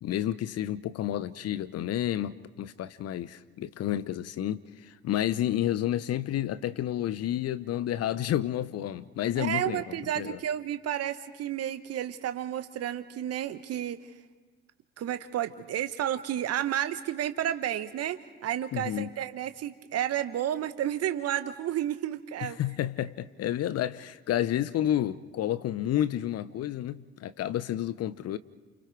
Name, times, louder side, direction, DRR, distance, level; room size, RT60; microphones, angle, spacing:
voice 1, 0.0-10.4 18.7-19.1 22.4-28.4, left 12 dB, 50° left, 15 dB, 0.9 m, -30 dB
voice 2, 9.4-14.0 15.0-22.6, right 11 dB, 50° right, 11 dB, 1.1 m, -31 dB
29.5 x 29.0 x 4.7 m, 1.3 s
figure-of-eight pair, 50°, 32 cm